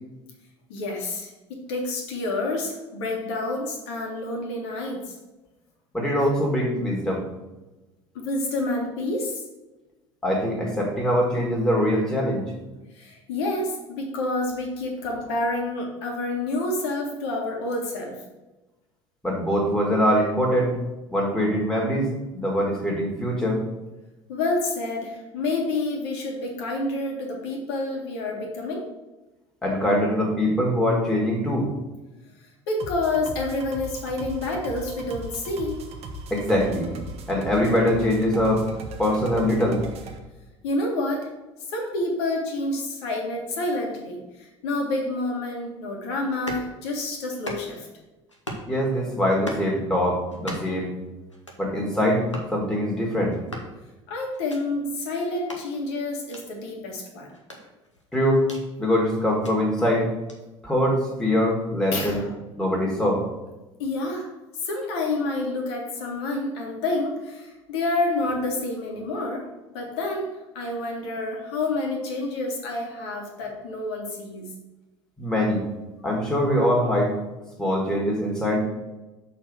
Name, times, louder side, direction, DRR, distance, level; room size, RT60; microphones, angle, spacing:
voice 1, 0.7-5.2 8.2-9.4 13.0-18.2 24.3-28.9 32.7-35.8 40.6-41.3 41.7-47.9 54.1-57.3 61.9-62.3 63.8-64.3 64.6-74.5, left 2 dB, 60° left, 1 dB, 1.8 m, -28 dB
voice 2, 5.9-7.2 10.2-12.5 19.2-20.7 21.1-22.1 22.3-23.6 29.6-31.7 36.3-36.9 37.3-38.7 39.0-39.8 48.7-50.9 51.6-52.2 52.5-53.4 58.1-58.4 58.8-60.1 60.6-62.2 62.6-63.2 75.2-75.6 76.0-77.1 77.6-78.6, equal, 5° left, -3 dB, 2.2 m, -23 dB
sound 1, 32.8-40.2, right 2 dB, 45° right, 1.0 m, -38 dB
sound 2, 46.3-46.7 47.3-47.9 48.3-48.7 49.3-49.7 50.3-50.8 51.3-51.7 52.3-52.5 53.3-53.7 54.3-54.6 55.3-55.6 56.3-56.4 57.3-58.7 59.3-59.5 60.3-60.4, equal, 90° left, 1.0 m, -38 dB
6.8 x 4.3 x 6.2 m, 1.1 s
figure-of-eight pair, 65°, 15 cm